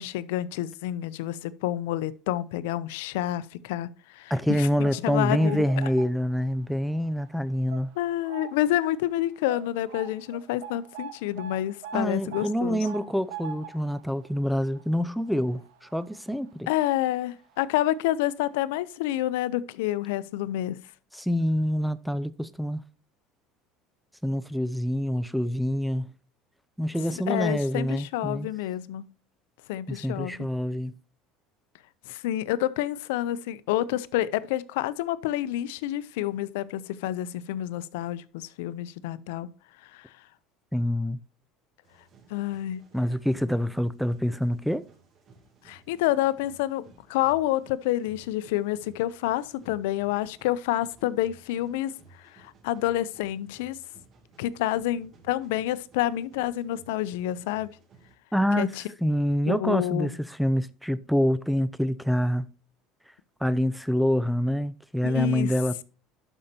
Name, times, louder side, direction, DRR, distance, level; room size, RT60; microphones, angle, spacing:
voice 1, 0.0-4.3 4.6-5.6 8.0-12.8 16.7-20.8 27.3-29.1 29.7-30.3 32.1-39.5 39.9-40.0 42.3-42.8 45.6-46.8 47.1-51.9 52.3-53.8 54.4-57.7 58.5-58.7 59.5-60.1 65.0-65.5, left 13 dB, 90° left, 0.6 m, -28 dB
voice 2, 4.3-7.9 11.9-16.7 21.1-22.8 24.2-26.1 26.8-28.5 29.9-31.0 40.7-41.2 42.9-44.8 58.3-58.7 59.0-62.5 63.4-65.8, equal, ahead, 0.5 m, -26 dB
sound 1, 4.5-6.5 6.9-7.2 7.7-8.8 9.1-9.2 9.5-16.5 16.8-17.0 17.8-17.9 18.3-18.4, right 8 dB, 80° right, 1.3 m, -43 dB
sound 2, 41.8-58.1, right 3 dB, 40° right, 2.6 m, -57 dB
12.0 x 5.4 x 2.8 m
cardioid pair, 135°, 0 cm